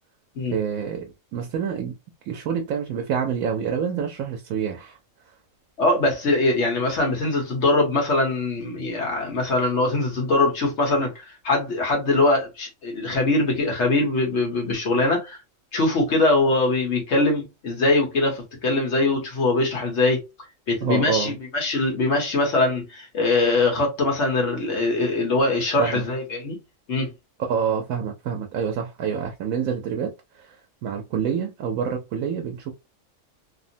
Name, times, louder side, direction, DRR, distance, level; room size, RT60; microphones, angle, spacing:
voice 1, 0.5-2.0 2.3-5.0 20.8-21.4 25.8-26.1 27.4-30.6 30.8-32.7, right 7 dB, 90° right, 1.0 m, -27 dB
voice 2, 5.8-15.4 15.7-20.2 20.7-26.6 26.9-27.1, left 2 dB, 60° left, 1.2 m, -22 dB
2.9 x 2.0 x 2.6 m
omnidirectional pair, 1.4 m